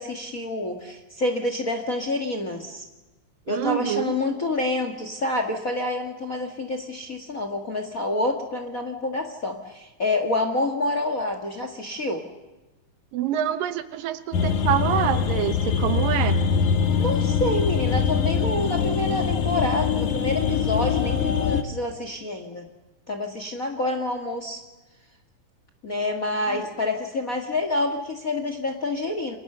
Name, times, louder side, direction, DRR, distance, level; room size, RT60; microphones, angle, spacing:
voice 1, 0.0-2.8 3.5-12.2 17.0-22.7 23.1-24.6 25.8-29.4, left 2 dB, 35° left, 6 dB, 1.4 m, -27 dB
voice 2, 3.5-4.1 13.1-16.4 26.5-26.7, right 10 dB, 80° right, 11 dB, 2.8 m, -26 dB
sound 1, 14.3-21.6, left 6 dB, 65° left, 2.7 m, -23 dB
29.5 x 23.5 x 6.8 m, 1.1 s
omnidirectional pair, 3.9 m